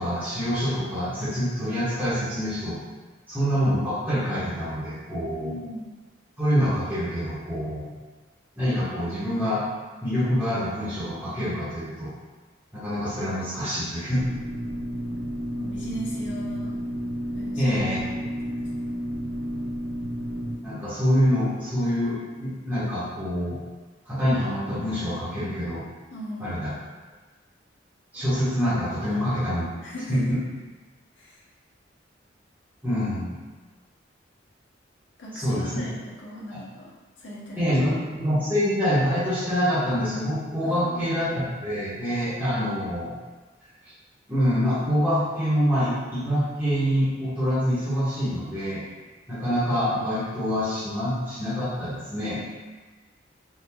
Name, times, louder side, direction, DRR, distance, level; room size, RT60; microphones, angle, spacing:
voice 1, 0.0-2.7 3.3-5.6 6.4-7.9 8.6-9.6 10.0-12.1 12.7-14.2 17.6-18.0 20.6-23.6 24.0-25.8 26.4-26.7 28.1-29.6 30.1-30.4 32.8-33.3 35.3-35.7 37.6-43.2 44.3-48.8 49.3-52.4, equal, 10° right, -14 dB, 1.0 m, -26 dB
voice 2, 5.4-5.9 15.6-16.8 17.3-17.8 18.2-18.6 26.1-26.6 29.1-29.4 29.8-30.4 31.2-31.4 35.2-36.9 37.2-37.8 40.6-41.2, equal, 75° left, -5 dB, 0.8 m, -39 dB
sound 1, 14.2-20.6, equal, 55° right, 0.3 m, -31 dB
3.6 x 2.3 x 2.9 m, 1.3 s
head